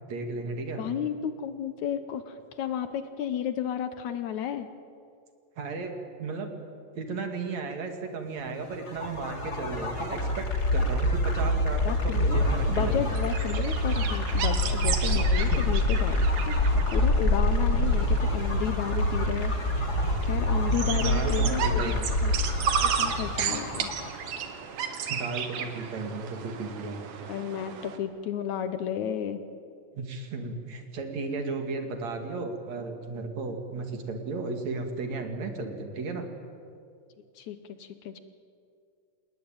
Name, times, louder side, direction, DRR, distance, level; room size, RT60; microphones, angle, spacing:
voice 1, 0.1-0.8 5.6-5.9 6.2-6.5 6.9-10.5 10.7-13.2 15.3-15.7 20.8-22.1 25.1-27.0 29.9-36.3, right 3 dB, 60° right, 5 dB, 3.4 m, -34 dB
voice 2, 0.8-4.7 11.8-12.4 12.7-19.5 20.2-21.9 22.2-22.3 22.8-23.9 27.3-29.4 37.4-38.2, left 9 dB, 70° left, 10 dB, 2.2 m, -33 dB
sound 1, 8.7-24.4, left 1 dB, 30° left, 3.1 m, -26 dB
sound 2, 12.4-28.0, right 7 dB, 75° right, 3.1 m, -34 dB
27.5 x 20.0 x 9.0 m, 2.4 s
omnidirectional pair, 3.8 m